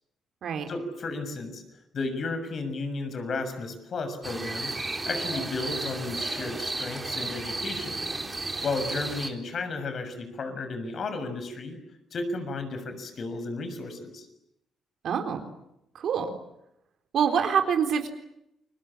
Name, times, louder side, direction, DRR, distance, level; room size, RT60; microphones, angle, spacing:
voice 1, 0.7-1.6 1.9-8.0 8.6-11.8 12.1-14.3, left 3 dB, 50° left, 9 dB, 6.7 m, -33 dB
sound 1, 4.2-9.3, right 2 dB, 20° right, 3.9 m, -33 dB
voice 2, 15.0-15.5 15.9-16.3 17.1-18.2, right 7 dB, 65° right, 5 dB, 4.0 m, -26 dB
29.5 x 23.0 x 8.8 m, 0.82 s
cardioid pair, 90°, 0 cm